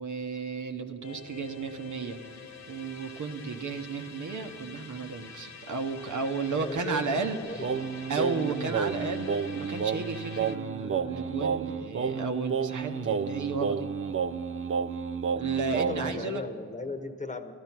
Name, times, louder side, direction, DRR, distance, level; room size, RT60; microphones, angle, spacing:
voice 1, 0.0-7.7 8.1-13.9 15.3-16.4, right 4 dB, 65° right, 5 dB, 1.1 m, -33 dB
sound 1, 1.0-10.5, left 5 dB, 60° left, 1.3 m, -47 dB
voice 2, 6.5-8.1 15.7-17.5, left 2 dB, 25° left, 7 dB, 1.1 m, -37 dB
Singing, 7.6-16.2, right 6 dB, 40° right, 0.5 m, -31 dB
14.0 x 12.0 x 5.9 m, 2.7 s
cardioid pair, 55°, 32 cm